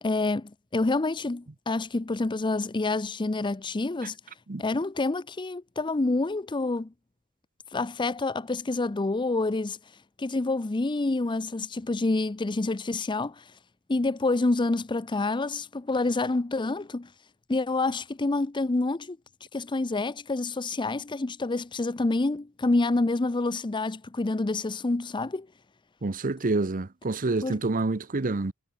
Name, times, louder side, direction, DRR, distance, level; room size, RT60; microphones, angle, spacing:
voice 1, 0.0-4.2 4.6-6.9 7.7-9.8 10.2-13.5 13.9-17.1 17.5-19.2 19.5-25.5 27.4-27.6, left 2 dB, 20° left, 0.5 m, -27 dB
voice 2, 26.0-28.5, right 3 dB, 40° right, 0.8 m, -27 dB
head